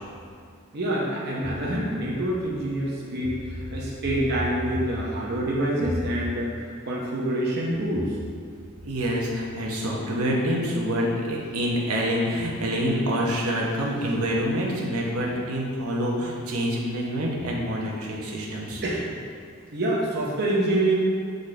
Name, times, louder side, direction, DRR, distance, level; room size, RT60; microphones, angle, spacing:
voice 1, 0.7-6.5 6.8-8.2 18.8-19.2 19.7-21.0, right 1 dB, 50° right, -5 dB, 0.8 m, -26 dB
voice 2, 8.8-18.8, equal, 75° right, -2 dB, 1.0 m, -26 dB
7.7 x 4.0 x 3.3 m, 2.2 s
head